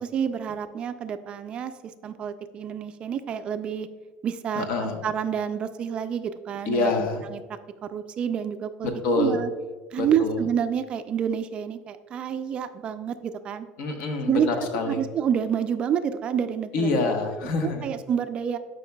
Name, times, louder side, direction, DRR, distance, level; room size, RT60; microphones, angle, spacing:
voice 1, 0.0-3.9 4.2-7.4 7.8-9.5 9.9-13.7 14.3-14.5 14.9-17.0 17.6-18.6, right 8 dB, 30° right, 10 dB, 0.3 m, -28 dB
voice 2, 4.5-5.0 6.7-7.2 9.0-9.4 10.0-10.4 13.8-15.0 16.7-17.9, left 3 dB, 65° left, 4 dB, 1.1 m, -26 dB
11.0 x 5.3 x 2.2 m, 1.4 s
cardioid pair, 155°, 3 cm